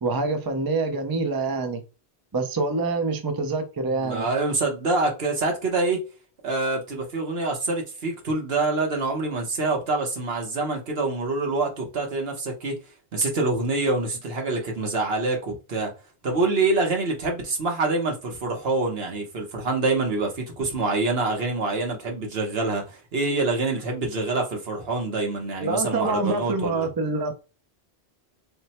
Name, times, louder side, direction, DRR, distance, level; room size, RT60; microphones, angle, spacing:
voice 1, 0.0-1.8 2.3-4.3 25.6-27.3, right 3 dB, 30° right, 0.4 m, -26 dB
voice 2, 3.9-6.0 6.4-12.8 13.1-15.9 16.2-26.9, right 3 dB, 65° right, 1.2 m, -26 dB
3.3 x 2.1 x 4.1 m
omnidirectional pair, 1.1 m